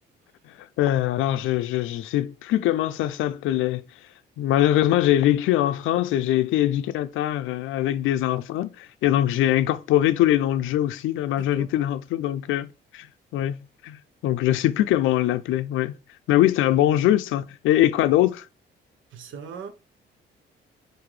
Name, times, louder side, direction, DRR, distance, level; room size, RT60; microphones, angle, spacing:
voice 1, 0.8-3.8 4.4-13.1 13.3-15.9 16.3-18.5, left 13 dB, 85° left, 0.5 m, -22 dB
voice 2, 11.4-11.7 16.3-16.4 19.1-19.7, right 6 dB, 75° right, 0.9 m, -39 dB
5.8 x 2.7 x 3.2 m
cardioid pair, 90°, 20 cm